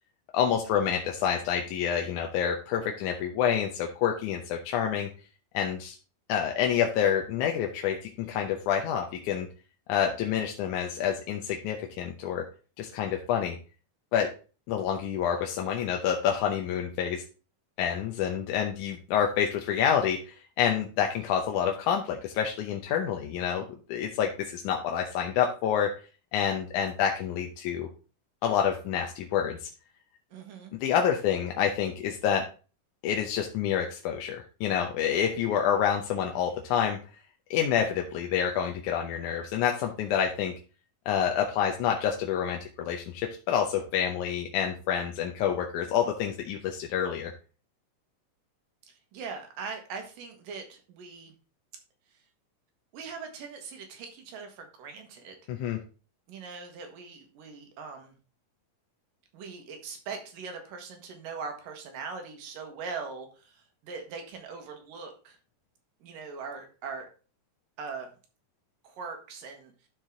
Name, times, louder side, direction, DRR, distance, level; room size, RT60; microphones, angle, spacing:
voice 1, 0.3-5.1 5.5-6.0 6.3-9.5 9.9-12.5 12.8-13.6 14.1-14.3 14.7-17.2 17.8-25.9 26.3-27.9 28.4-29.7 30.8-32.4 33.0-37.0 37.5-40.5 41.1-47.3 55.5-55.8, left 8 dB, 75° left, 2 dB, 2.1 m, -28 dB
voice 2, 30.3-30.7 48.9-51.3 52.9-55.3 56.3-58.1 59.3-65.4 66.0-67.1 67.8-68.1 68.8-69.7, right 5 dB, 80° right, 4 dB, 3.1 m, -41 dB
11.5 x 4.6 x 3.7 m, 0.35 s
omnidirectional pair, 3.9 m